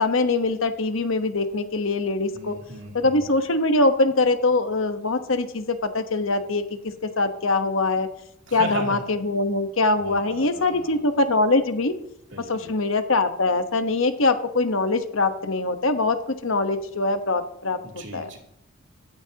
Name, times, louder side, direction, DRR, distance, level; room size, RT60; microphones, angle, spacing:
voice 1, 0.0-2.5 2.9-6.6 7.0-8.1 8.5-11.9 12.5-18.3, left 2 dB, 75° left, 8 dB, 1.2 m, -23 dB
voice 2, 2.3-3.2 8.5-9.0 10.0-11.1 12.3-12.8 17.8-18.4, right 2 dB, 60° right, 0 dB, 2.9 m, -36 dB
16.5 x 13.0 x 2.9 m, 0.77 s
head